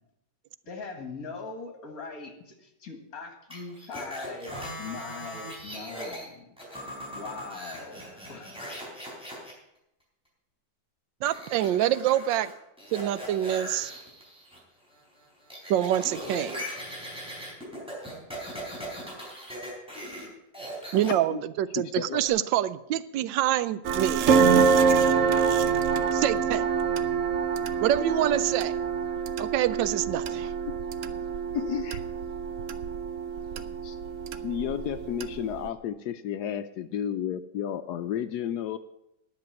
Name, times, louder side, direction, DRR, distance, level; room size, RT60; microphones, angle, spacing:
voice 1, 0.7-6.5 7.1-8.6, left 4 dB, 55° left, 6 dB, 2.2 m, -41 dB
sound 1, 3.5-6.3 6.6-9.5 11.3-12.5 12.8-14.6 14.9-20.3 20.5-21.1 22.2-22.3, equal, 5° right, 4.2 m, -39 dB
voice 2, 11.2-12.5 12.9-13.9 15.7-16.6 20.9-24.3 26.1-26.7 27.8-28.8 29.4-30.5, right 12 dB, 90° right, 16 dB, 1.3 m, -26 dB
voice 3, 21.8-22.2 31.5-32.0 33.8-34.0 34.4-38.8, left 10 dB, 70° left, 10 dB, 1.1 m, -32 dB
sound 2, 23.8-35.7, right 6 dB, 65° right, 0.8 m, -26 dB
10.5 x 6.8 x 9.3 m, 0.84 s
omnidirectional pair, 1.9 m